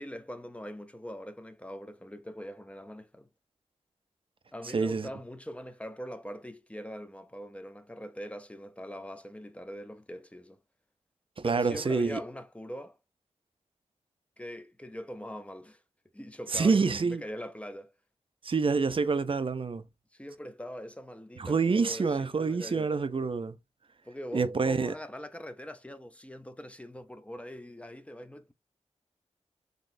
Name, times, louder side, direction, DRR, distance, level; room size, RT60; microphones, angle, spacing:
voice 1, 0.0-3.3 4.5-10.6 11.4-13.0 14.4-15.8 16.1-17.9 20.1-22.9 24.0-28.5, equal, 10° left, 0.6 m, -42 dB
voice 2, 4.7-5.1 11.4-12.2 16.5-17.2 18.4-19.8 21.4-23.6 24.3-24.9, right 4 dB, 45° right, 0.5 m, -27 dB
4.0 x 3.0 x 2.6 m
cardioid pair, 45°, 12 cm